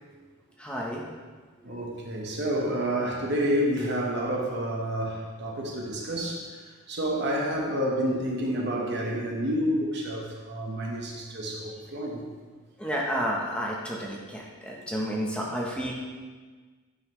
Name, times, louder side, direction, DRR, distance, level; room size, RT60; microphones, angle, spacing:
voice 1, 0.6-1.0 12.8-15.9, equal, 5° left, -3 dB, 0.8 m, -31 dB
voice 2, 1.6-6.4 6.9-12.2, equal, 50° right, -1 dB, 1.2 m, -29 dB
9.9 x 5.5 x 3.2 m, 1.4 s
head